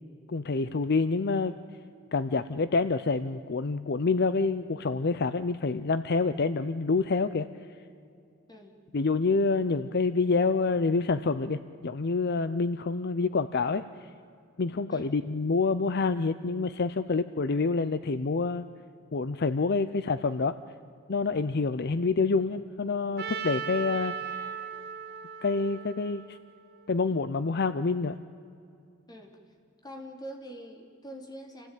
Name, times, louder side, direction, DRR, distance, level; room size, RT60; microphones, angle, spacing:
voice 1, 0.3-1.5 2.1-7.5 8.9-13.8 14.6-18.6 19.1-20.6 21.1-24.6 25.4-26.4 26.9-28.2, left 4 dB, 55° left, 13 dB, 0.6 m, -27 dB
voice 2, 8.5-8.8 14.9-15.2 29.1-29.3 29.8-31.7, equal, 20° left, 3 dB, 3.3 m, -44 dB
Trumpet, 23.2-27.2, right 7 dB, 55° right, 1.9 m, -38 dB
28.0 x 16.5 x 9.2 m, 2.5 s
head